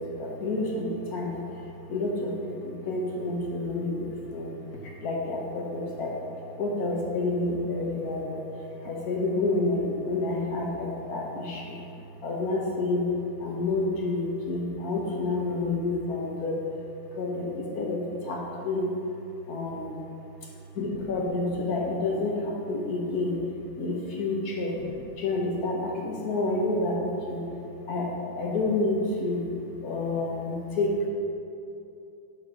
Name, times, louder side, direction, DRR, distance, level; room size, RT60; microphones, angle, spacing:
voice 1, 0.0-1.3 1.9-2.3 2.8-4.6 5.0-6.1 6.6-8.4 8.9-11.8 12.2-13.0 13.4-16.6 17.2-18.0 18.3-18.4 18.6-18.9 19.5-20.0 20.8-22.3 22.7-23.4 23.8-24.8 25.2-27.4 27.9-28.0 28.4-29.4 29.8-30.9, left 2 dB, 50° left, -1 dB, 1.4 m, -29 dB
11.0 x 4.2 x 4.9 m, 2.7 s
omnidirectional pair, 2.3 m